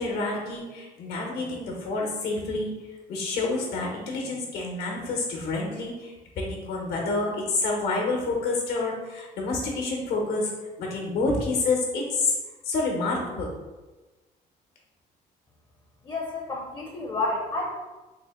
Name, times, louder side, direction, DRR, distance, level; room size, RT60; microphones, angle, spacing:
voice 1, 0.0-2.7 3.1-10.5 10.8-12.3 12.6-13.5, left 3 dB, 75° left, 0 dB, 1.0 m, -28 dB
voice 2, 16.0-17.7, left 2 dB, 25° left, 0 dB, 0.6 m, -30 dB
3.7 x 2.1 x 3.6 m, 1.2 s
cardioid pair, 110°, 17 cm